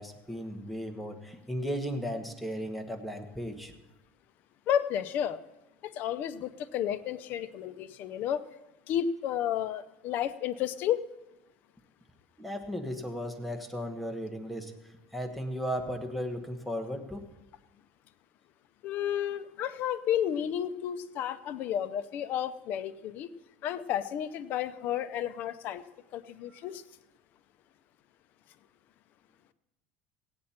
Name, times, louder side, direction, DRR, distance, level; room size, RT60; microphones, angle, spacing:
voice 1, 0.0-3.7 12.4-17.2 26.5-26.6, equal, ahead, 4 dB, 1.2 m, -36 dB
voice 2, 4.7-5.4 5.8-8.4 8.9-11.0 18.8-23.3 23.6-25.8 26.1-26.8, left 10 dB, 55° left, 13 dB, 0.6 m, -32 dB
17.0 x 8.6 x 4.3 m, 1.0 s
cardioid pair, 135°, 4 cm